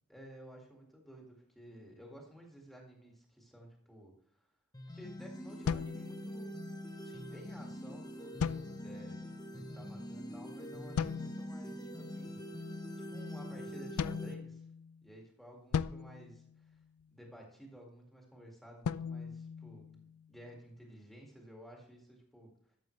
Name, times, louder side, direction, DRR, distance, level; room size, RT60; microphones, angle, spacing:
voice 1, 0.1-4.5 4.9-6.6 7.0-9.2 9.5-12.7 13.0-14.7 15.0-16.8 17.1-22.8, equal, ahead, -1 dB, 2.0 m, -54 dB
sound 1, 4.7-14.3, equal, 20° left, 0.9 m, -44 dB
sound 2, 5.7-6.7 8.4-9.2 11.0-11.6 14.0-15.0 15.7-17.2 18.8-20.4, left 6 dB, 80° left, 0.4 m, -38 dB
12.5 x 7.4 x 3.2 m, 0.71 s
head